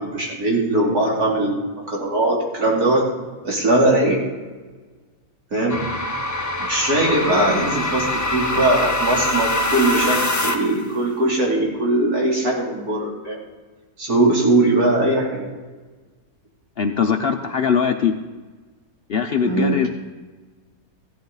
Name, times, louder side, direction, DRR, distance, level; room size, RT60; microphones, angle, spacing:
voice 1, 0.0-3.1 3.4-4.2 5.5-5.9 6.6-13.4 14.0-15.5 19.4-19.9, right 2 dB, 85° right, -3 dB, 3.1 m, -20 dB
sound 1, 5.7-10.8, left 1 dB, 25° left, 0.4 m, -24 dB
voice 2, 16.8-18.2 19.1-19.9, left 7 dB, 55° left, 6 dB, 0.7 m, -21 dB
15.5 x 11.0 x 3.9 m, 1.3 s
omnidirectional pair, 1.6 m